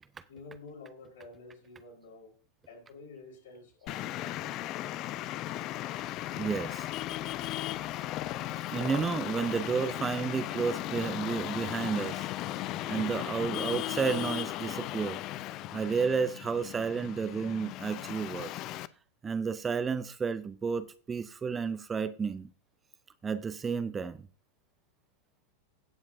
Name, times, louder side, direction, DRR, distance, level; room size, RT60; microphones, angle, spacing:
voice 1, 0.3-2.4 2.7-4.5, left 3 dB, 60° left, 4.2 m, -50 dB
Traffic noise roadway noise, 3.9-18.9, left 14 dB, 35° left, 0.4 m, -36 dB
voice 2, 6.4-6.9 8.7-15.2 15.7-18.5 19.2-22.5 23.2-24.2, right 5 dB, 15° right, 0.5 m, -32 dB
17.0 x 7.1 x 2.6 m
figure-of-eight pair, 90°, 0 cm